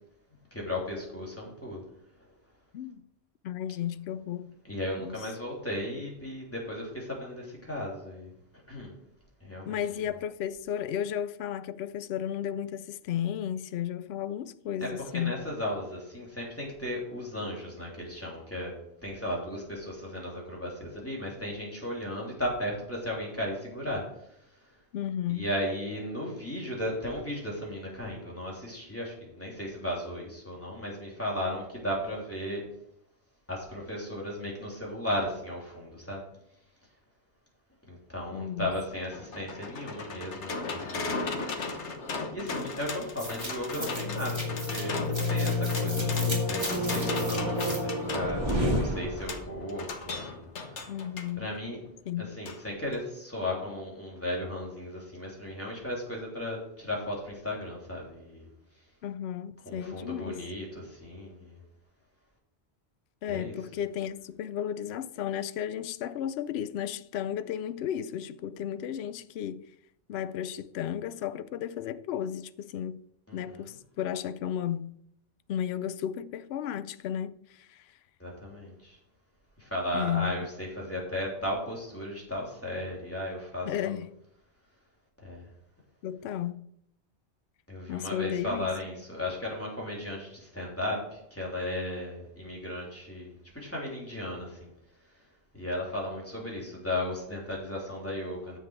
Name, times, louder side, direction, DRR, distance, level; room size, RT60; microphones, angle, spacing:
voice 1, 0.5-1.8 4.7-8.3 8.7-8.9 9.4-9.8 14.8-14.9 15.1-18.7 19.0-24.0 25.3-32.7 33.5-36.2 37.9-41.3 42.3-50.5 51.4-51.9 52.2-58.5 59.6-61.6 63.3-63.5 73.3-73.7 78.2-79.0 79.6-84.0 85.2-85.4 87.7-94.7 95.5-98.6, left 1 dB, 10° left, 3.3 m, -35 dB
voice 2, 3.4-4.5 5.0-5.3 9.7-15.3 24.9-25.4 38.3-38.7 50.9-51.5 52.0-52.3 59.0-60.4 63.2-69.7 70.1-73.0 73.3-74.9 75.5-77.9 79.9-80.4 83.7-84.1 86.0-86.5 87.9-88.7, left 10 dB, 70° left, 0.8 m, -33 dB
sound 1, 38.8-51.3 52.5-52.6 52.9-53.0, left 3 dB, 90° left, 1.4 m, -37 dB
sound 2, 43.2-49.5, left 1 dB, 25° right, 2.2 m, -30 dB
10.0 x 7.1 x 4.7 m
omnidirectional pair, 1.1 m